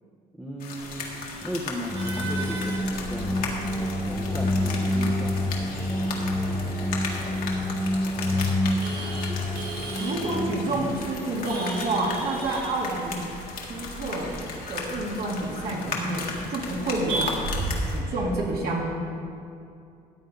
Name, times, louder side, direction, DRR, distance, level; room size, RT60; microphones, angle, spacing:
voice 1, 0.3-3.4 3.7-5.4, equal, 10° right, -3 dB, 1.0 m, -36 dB
sound 1, 0.6-18.0, left 4 dB, 60° left, 1.8 m, -37 dB
Male speech man speaking / Laughter / Chatter, 0.8-18.3, right 2 dB, 90° right, 2.4 m, -37 dB
sound 2, 1.9-10.9, left 1 dB, 5° left, 1.2 m, -28 dB
voice 2, 10.0-13.2 13.7-14.4 14.7-17.3 17.9-18.9, right 2 dB, 65° right, -3 dB, 2.5 m, -29 dB
14.0 x 8.3 x 3.9 m, 2.4 s
cardioid pair, 110°, 17 cm